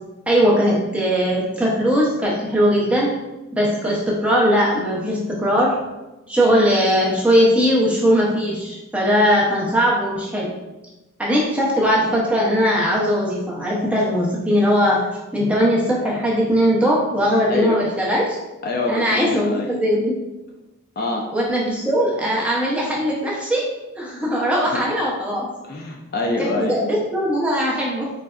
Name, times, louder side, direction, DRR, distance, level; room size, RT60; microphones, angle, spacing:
voice 1, 0.3-3.1 3.5-5.8 6.3-10.5 11.2-15.1 15.3-18.4 18.9-20.2 21.3-23.7 24.0-25.5 26.4-28.1, equal, 5° right, -5 dB, 0.6 m, -19 dB
voice 2, 17.5-17.8 18.6-19.7 21.0-21.3 24.6-24.8 25.7-26.8, left 3 dB, 45° left, 0 dB, 0.4 m, -25 dB
3.9 x 3.2 x 2.4 m, 1.0 s
head